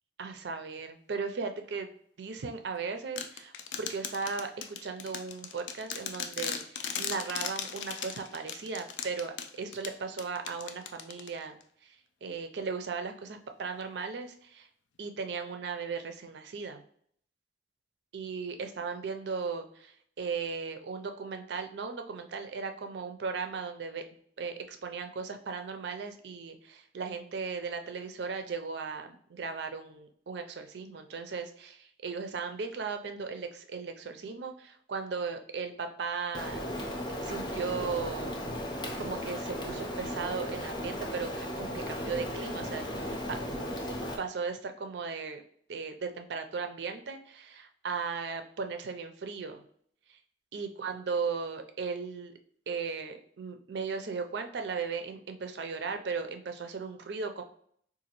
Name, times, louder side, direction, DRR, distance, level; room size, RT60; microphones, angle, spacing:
voice 1, 0.2-1.9 2.2-3.5 3.8-11.6 12.2-14.7 15.0-16.8 18.1-24.0 24.4-36.6 37.2-38.4 39.0-43.4 44.2-45.4 45.7-49.6 50.5-52.3 52.7-57.4, right 5 dB, 65° right, 6 dB, 0.4 m, -37 dB
sound 1, 3.2-11.6, left 7 dB, 70° left, 0.4 m, -38 dB
Rain, 36.3-44.2, equal, 25° left, 0.5 m, -36 dB
3.8 x 2.4 x 2.9 m, 0.63 s
head